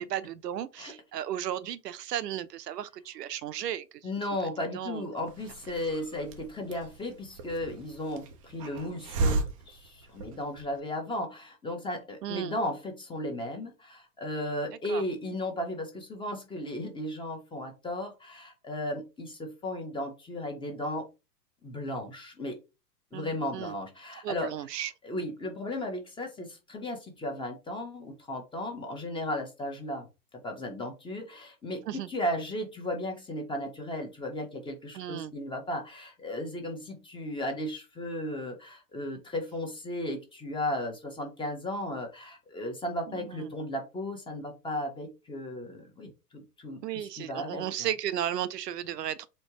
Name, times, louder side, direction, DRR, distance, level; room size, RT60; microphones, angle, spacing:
voice 1, 0.0-3.8 4.7-5.0 12.2-12.6 14.7-15.0 23.1-23.7 24.2-24.9 31.9-32.1 34.9-35.3 43.1-43.5 46.8-49.3, right 11 dB, 75° right, 0.7 m, -35 dB
voice 2, 4.0-21.1 21.6-22.6 23.1-24.5 25.0-30.1 30.4-47.9, left 1 dB, 10° left, 1.0 m, -35 dB
Hiss, 5.3-10.8, right 3 dB, 25° right, 0.3 m, -35 dB
4.3 x 2.9 x 2.9 m
hypercardioid pair, 110°, 49 cm